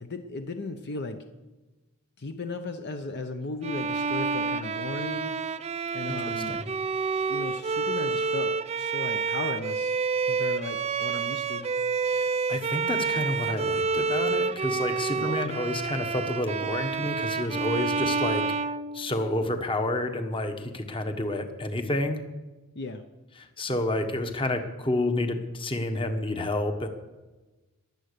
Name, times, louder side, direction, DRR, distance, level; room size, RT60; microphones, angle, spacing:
voice 1, 0.0-1.3 2.2-5.4 5.9-6.6 7.3-10.0 10.2-11.7 15.1-15.7 22.7-23.1, left 3 dB, 50° left, 7 dB, 0.8 m, -36 dB
Bowed string instrument, 3.6-19.5, right 5 dB, 30° right, 0.4 m, -29 dB
voice 2, 6.1-6.6 12.1-18.4 18.9-22.2 23.4-26.9, left 1 dB, 25° left, 7 dB, 1.2 m, -29 dB
21.5 x 7.8 x 6.8 m, 1.2 s
head